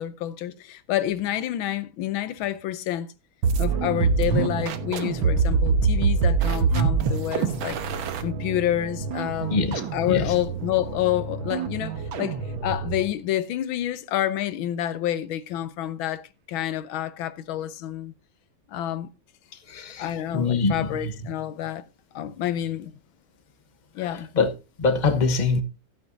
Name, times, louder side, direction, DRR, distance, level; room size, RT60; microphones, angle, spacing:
voice 1, 0.0-3.1 3.6-7.8 8.2-9.6 9.9-18.1 18.7-19.1 20.0-21.8 22.1-22.9 23.9-24.3, left 12 dB, 85° left, 1.5 m, -28 dB
sound 1, 3.4-13.1, right 5 dB, 85° right, 1.9 m, -25 dB
voice 2, 9.5-10.4 19.5-21.1 24.0-25.6, left 4 dB, 25° left, 1.1 m, -25 dB
15.0 x 8.7 x 2.7 m
omnidirectional pair, 2.2 m